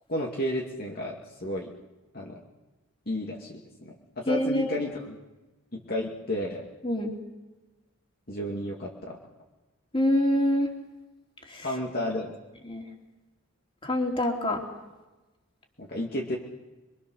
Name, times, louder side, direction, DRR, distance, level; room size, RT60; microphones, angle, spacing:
voice 1, 0.1-1.7 2.1-2.4 3.1-5.2 5.7-6.6 8.3-9.2 11.6-12.4 15.8-16.4, left 1 dB, 45° left, -1 dB, 2.4 m, -32 dB
voice 2, 4.3-4.7 6.8-7.2 9.9-10.7 11.5-11.7 12.6-12.8 13.8-14.6, left 1 dB, 25° left, 1 dB, 3.4 m, -25 dB
27.5 x 23.5 x 6.5 m, 1.1 s
head